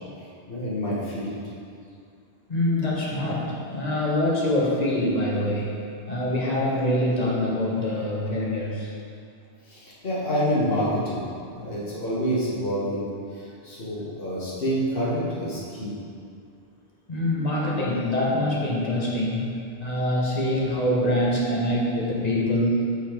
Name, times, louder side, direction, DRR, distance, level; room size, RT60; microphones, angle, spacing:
voice 1, 0.5-1.4 9.7-16.0, equal, 60° left, -9 dB, 1.9 m, -27 dB
voice 2, 2.5-5.7 6.1-8.9 17.1-23.0, left 1 dB, 40° left, -5 dB, 1.4 m, -25 dB
5.7 x 5.4 x 5.1 m, 2.4 s
omnidirectional pair, 1.1 m